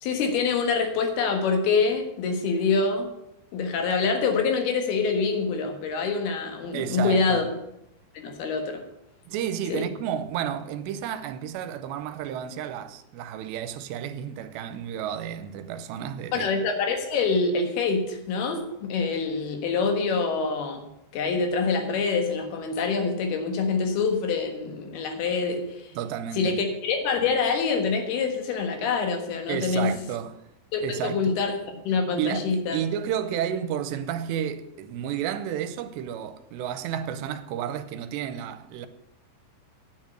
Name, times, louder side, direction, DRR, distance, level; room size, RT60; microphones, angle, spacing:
voice 1, 0.0-3.1 3.5-7.4 8.1-8.8 9.7-9.8 16.3-20.8 21.1-25.9 26.3-29.9 30.7-32.8, left 4 dB, 70° left, 3.2 m, -25 dB
voice 2, 6.7-7.4 9.3-16.5 26.0-26.6 29.5-30.4 30.8-31.4 32.2-38.9, right 9 dB, 90° right, 2.8 m, -31 dB
9.5 x 7.4 x 7.8 m
omnidirectional pair, 5.0 m